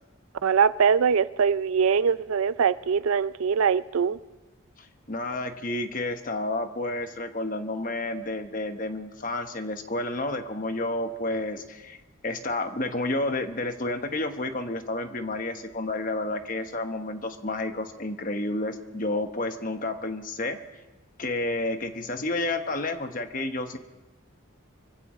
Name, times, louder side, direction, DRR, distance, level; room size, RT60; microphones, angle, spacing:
voice 1, 0.4-4.2, right 6 dB, 85° right, 0.5 m, -22 dB
voice 2, 4.8-12.0 12.2-20.6 21.2-23.8, left 2 dB, 40° left, 1.1 m, -30 dB
25.0 x 16.0 x 3.1 m
head